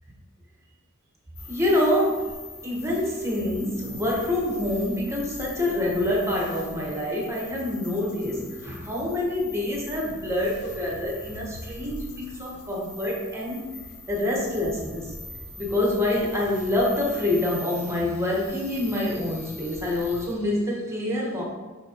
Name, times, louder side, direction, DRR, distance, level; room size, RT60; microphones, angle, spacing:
sound 1, 1.4-20.4, left 2 dB, 75° left, 0.9 m, -42 dB
voice 1, 1.5-2.3 2.6-13.7 14.1-15.1 15.6-21.4, left 1 dB, 10° right, -3 dB, 1.4 m, -26 dB
6.3 x 5.8 x 3.0 m, 1.3 s
head